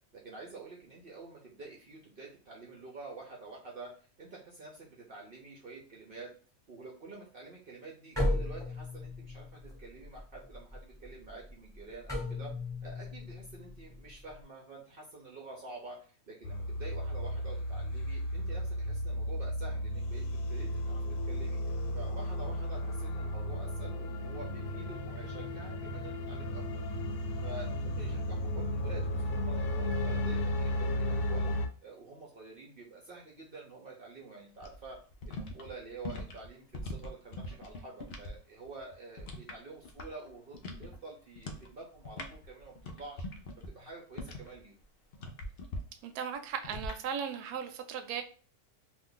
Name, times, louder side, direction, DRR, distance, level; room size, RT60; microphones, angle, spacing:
voice 1, 0.1-6.3 6.7-12.5 12.8-26.6 27.4-31.5 31.8-35.0 35.2-43.2 43.7-44.7, right 3 dB, 55° right, 0.6 m, -48 dB
sound 1, 8.1-14.4, left 1 dB, 5° left, 1.0 m, -36 dB
sound 2, 16.4-31.7, left 1 dB, 80° left, 1.1 m, -34 dB
sound 3, 34.6-38.4 38.6-40.3 40.5-41.0 41.4-41.7 42.0-44.6 45.1-45.8 46.6-47.0, left 2 dB, 60° left, 0.6 m, -42 dB
voice 2, 46.0-48.2, right 7 dB, 85° right, 1.1 m, -37 dB
2.6 x 2.5 x 3.6 m
omnidirectional pair, 1.6 m